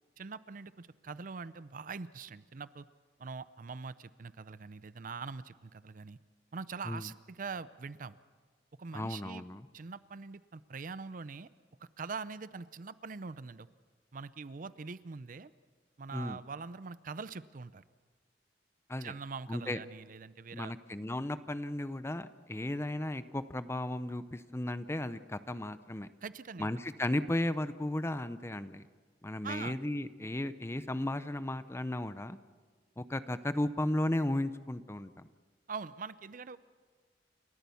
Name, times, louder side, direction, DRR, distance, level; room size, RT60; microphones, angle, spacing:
voice 1, 0.2-2.9 3.2-6.2 6.5-8.2 8.8-9.4 9.7-11.5 11.8-13.7 14.1-15.5 16.0-17.8 19.0-20.7 26.2-26.7 29.4-29.8 35.7-36.6, right 4 dB, 50° right, 16 dB, 0.6 m, -43 dB
voice 2, 8.9-9.7 16.1-16.4 18.9-19.1 19.5-19.8 20.5-26.1 26.6-28.8 29.2-32.4 33.0-35.3, left 1 dB, 15° left, 13 dB, 0.6 m, -35 dB
29.5 x 13.5 x 7.0 m, 1.5 s
head